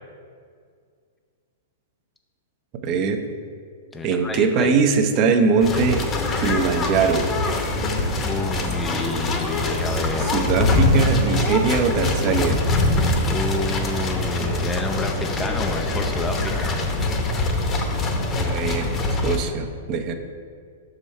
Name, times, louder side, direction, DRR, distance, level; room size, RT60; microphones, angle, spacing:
voice 1, 2.8-3.2 4.0-6.0 6.4-7.3 10.2-12.6 18.4-20.1, right 5 dB, 40° right, 6 dB, 0.7 m, -21 dB
voice 2, 3.9-4.8 8.2-10.5 13.2-16.8, left 2 dB, 10° left, 3 dB, 0.4 m, -30 dB
sound 1, 5.6-19.4, left 2 dB, 25° left, 0.9 m, -23 dB
6.2 x 5.1 x 4.3 m, 2.1 s
hypercardioid pair, 115°, 0 cm